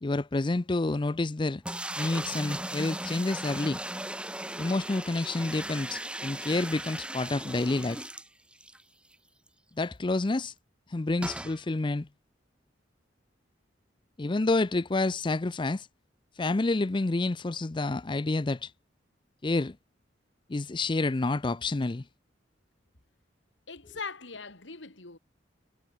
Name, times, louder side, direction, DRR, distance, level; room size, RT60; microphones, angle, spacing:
voice 1, 0.0-1.6 2.0-3.8 4.6-8.1 9.8-10.5 10.9-12.1 14.2-15.9 16.4-18.7 19.4-19.8 20.5-22.1, left 2 dB, 25° left, 0.5 m, -29 dB
sound 1, 1.6-8.8 9.1-9.2 9.5-9.6 11.2-11.6, right 1 dB, 5° right, 1.8 m, -37 dB
voice 2, 23.7-25.2, left 4 dB, 85° left, 3.2 m, -41 dB
head